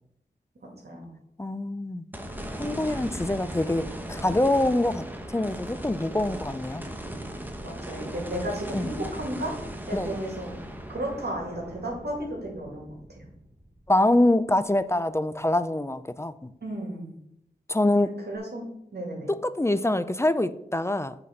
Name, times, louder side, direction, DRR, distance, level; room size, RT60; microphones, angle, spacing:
voice 1, 1.4-2.0 2.6-6.8 8.7-8.9 9.9-10.2 13.9-16.5 17.7-18.2 19.3-21.2, left 1 dB, 15° left, 0.4 m, -25 dB
sound 1, 2.1-14.5 14.9-15.0 18.4-18.5, right 1 dB, 10° right, 1.0 m, -38 dB
voice 2, 7.5-10.5 10.9-13.3 16.6-17.1 18.0-19.3, right 1 dB, 65° right, 2.2 m, -34 dB
7.4 x 4.1 x 5.7 m
cardioid pair, 55°, 18 cm